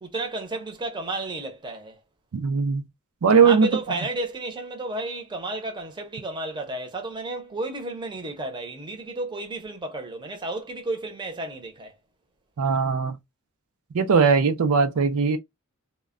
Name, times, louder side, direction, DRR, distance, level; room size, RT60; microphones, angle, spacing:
voice 1, 0.0-2.0 3.4-11.9, right 2 dB, 20° right, 0.6 m, -32 dB
voice 2, 2.3-2.8 3.2-4.0 12.6-13.2 13.9-15.4, right 5 dB, 85° right, 0.5 m, -20 dB
2.1 x 2.1 x 3.5 m
head